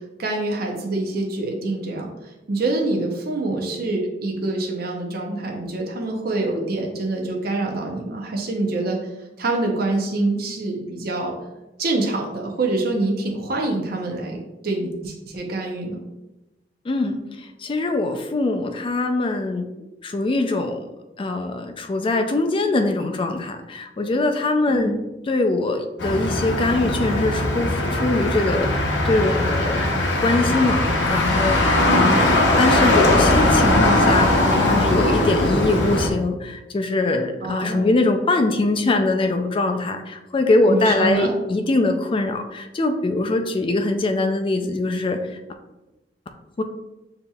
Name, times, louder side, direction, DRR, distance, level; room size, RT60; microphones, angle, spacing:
voice 1, 0.2-2.1 2.5-9.0 9.4-11.3 11.8-16.0 24.7-24.9 31.8-32.2 37.4-37.9 40.7-41.3, right 2 dB, 60° right, 1 dB, 0.7 m, -25 dB
voice 2, 16.9-17.2 17.6-19.7 20.0-20.8 21.2-24.9 25.3-29.9 30.2-30.8 31.1-45.2 46.6-46.7, left 2 dB, 30° left, 5 dB, 0.4 m, -22 dB
Motor vehicle (road), 26.0-36.1, left 1 dB, 85° left, 0.8 m, -19 dB
6.8 x 2.8 x 2.3 m, 1.0 s
head